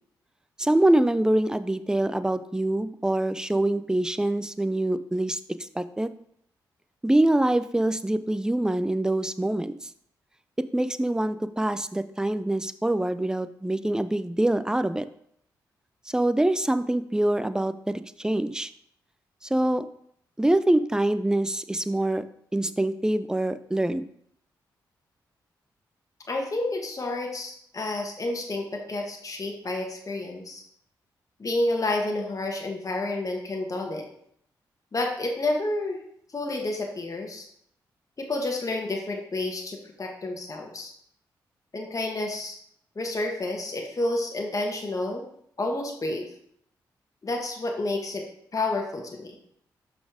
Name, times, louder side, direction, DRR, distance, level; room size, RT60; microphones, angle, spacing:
voice 1, 0.6-6.1 7.0-9.9 10.6-15.1 16.1-18.7 19.4-19.9 20.4-22.2 22.5-24.0, right 1 dB, 10° right, 12 dB, 0.5 m, -25 dB
voice 2, 26.3-30.6 31.4-34.1 34.9-36.0 36.3-37.5 38.2-40.9 41.7-42.5 42.9-45.2 45.6-46.3 47.2-48.3 48.5-49.3, left 2 dB, 40° left, 1 dB, 1.5 m, -30 dB
5.8 x 4.3 x 4.9 m, 0.68 s
supercardioid pair, 45°, 9 cm